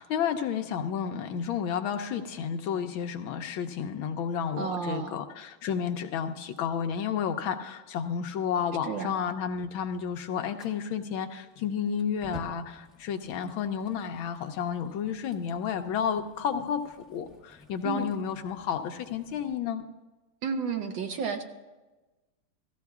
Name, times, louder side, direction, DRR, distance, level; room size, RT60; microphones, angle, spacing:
voice 1, 0.0-19.8, left 7 dB, 75° left, 6 dB, 1.4 m, -31 dB
voice 2, 4.6-5.2 8.8-9.1 17.8-18.1 20.4-21.4, right 6 dB, 65° right, 5 dB, 1.5 m, -31 dB
Fire, 10.6-19.5, left 1 dB, ahead, 0.4 m, -53 dB
17.0 x 14.0 x 2.4 m, 1.1 s
omnidirectional pair, 2.4 m